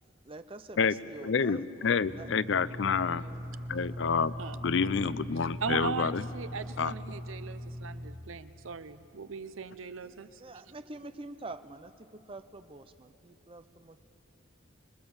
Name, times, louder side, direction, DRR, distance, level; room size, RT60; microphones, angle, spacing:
voice 1, 0.2-2.3 3.2-4.2 10.0-14.0, right 2 dB, 25° right, 10 dB, 0.7 m, -47 dB
voice 2, 1.2-3.3 3.7-4.3 4.6-6.3 6.8-6.9, left 5 dB, 60° left, 16 dB, 0.5 m, -28 dB
sound 1, 2.0-8.1, equal, 55° right, 3.6 m, -41 dB
voice 3, 5.6-10.3, right 5 dB, 80° right, 12 dB, 0.8 m, -38 dB
25.5 x 21.5 x 7.2 m, 2.9 s
head